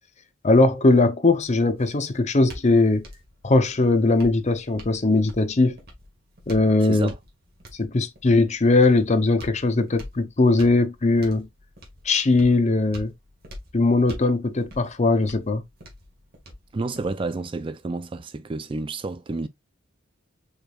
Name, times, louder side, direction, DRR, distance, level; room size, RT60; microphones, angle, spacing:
voice 1, 0.4-3.0 3.4-5.8 6.5-7.1 7.8-11.5 12.1-13.1 13.7-15.6, left 2 dB, 35° left, 0.7 m, -20 dB
sound 1, 1.4-17.4, equal, 50° right, 2.0 m, -45 dB
voice 2, 6.8-7.2 16.7-19.5, right 3 dB, 25° right, 0.4 m, -30 dB
5.0 x 4.5 x 2.4 m
head